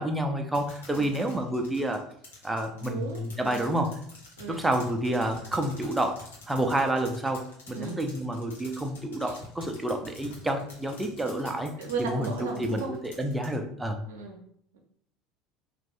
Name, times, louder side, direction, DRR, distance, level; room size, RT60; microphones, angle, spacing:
voice 1, 0.0-2.1 2.4-3.9 4.5-14.1, right 1 dB, 10° right, 4 dB, 0.6 m, -29 dB
sound 1, 0.5-13.5, left 2 dB, 70° left, 1.0 m, -48 dB
voice 2, 2.7-3.7 4.4-4.6 7.7-8.1 9.2-9.4 11.8-12.9 14.1-14.4, right 4 dB, 65° right, 2 dB, 0.7 m, -36 dB
3.3 x 2.6 x 3.4 m, 0.66 s
figure-of-eight pair, 70°, 0 cm